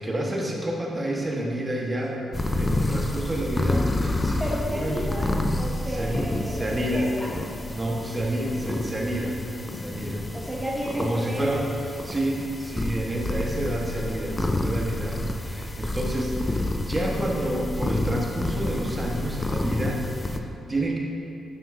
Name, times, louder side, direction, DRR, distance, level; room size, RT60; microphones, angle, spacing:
voice 1, 0.0-2.2 2.6-5.0 5.9-7.1 7.7-9.4 9.7-10.2 11.0-11.7 12.0-21.0, right 1 dB, 25° right, -1 dB, 1.2 m, -29 dB
sound 1, 2.3-20.4, left 1 dB, 25° left, 0.5 m, -29 dB
voice 2, 4.4-5.3 5.6-7.3 10.3-11.5, equal, 10° right, -5 dB, 0.9 m, -32 dB
9.6 x 5.7 x 2.6 m, 2.7 s
cardioid pair, 65°, 0 cm